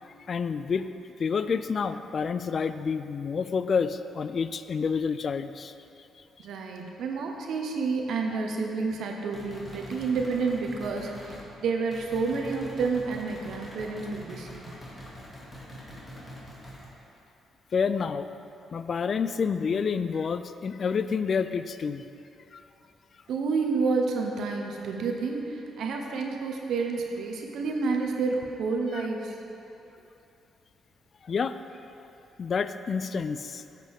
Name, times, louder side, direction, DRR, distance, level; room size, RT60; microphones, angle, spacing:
voice 1, 0.0-0.9 1.2-5.7 17.7-18.3 18.7-22.0 22.5-22.6 31.2-31.6 32.4-33.6, left 6 dB, 45° left, 12 dB, 0.3 m, -28 dB
voice 2, 6.4-14.7 23.3-29.3, right 4 dB, 70° right, 2 dB, 0.8 m, -29 dB
sound 1, 9.3-11.5 11.9-16.9, equal, 20° left, 2.2 m, -44 dB
10.5 x 7.5 x 3.6 m, 2.7 s
cardioid pair, 90°, 0 cm